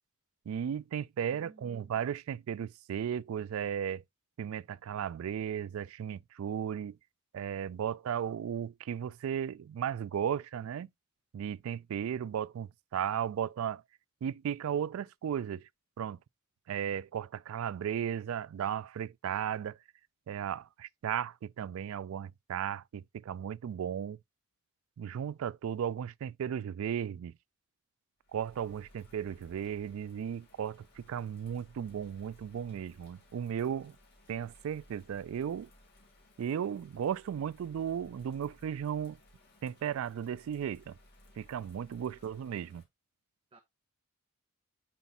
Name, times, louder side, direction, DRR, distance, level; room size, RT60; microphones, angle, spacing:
voice 1, 0.5-4.0 4.4-7.0 7.3-10.9 11.3-13.8 14.2-15.7 16.0-16.2 16.7-19.8 20.3-24.2 25.0-27.3 28.3-34.0 34.3-35.7 36.4-39.2 39.6-41.0 41.4-42.8, right 8 dB, 70° right, 0.3 m, -35 dB
voice 2, 1.3-1.9 42.1-42.3 43.5-43.6, right 3 dB, 25° right, 0.7 m, -57 dB
Bird vocalization bird call bird song / Rain, 28.2-42.8, left 1 dB, 50° left, 2.3 m, -61 dB
8.0 x 5.6 x 2.5 m
head